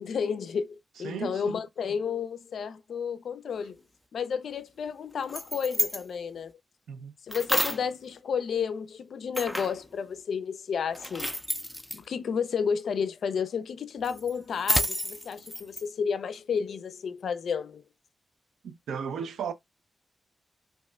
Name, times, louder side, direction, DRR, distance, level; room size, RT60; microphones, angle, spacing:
voice 1, 0.0-3.8 4.1-6.5 7.3-11.3 11.9-17.8, left 6 dB, 75° left, 0.3 m, -31 dB
voice 2, 1.0-1.6 6.9-7.1 18.6-19.5, right 7 dB, 90° right, 0.4 m, -35 dB
sound 1, 5.1-6.0 7.3-7.9 9.3-9.8 10.9-12.0 14.0-15.8, equal, ahead, 0.4 m, -30 dB
2.8 x 2.1 x 3.2 m
cardioid pair, 60°, 0 cm